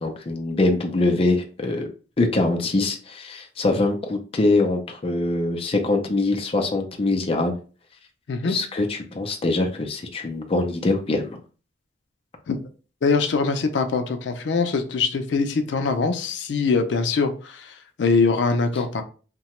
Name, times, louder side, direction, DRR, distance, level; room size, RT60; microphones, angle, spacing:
voice 1, 0.0-1.9 2.2-7.5 8.4-11.4, left 2 dB, 35° left, 3 dB, 0.5 m, -23 dB
voice 2, 13.0-19.0, left 4 dB, 90° left, 7 dB, 0.4 m, -23 dB
2.8 x 2.2 x 3.0 m, 0.37 s
head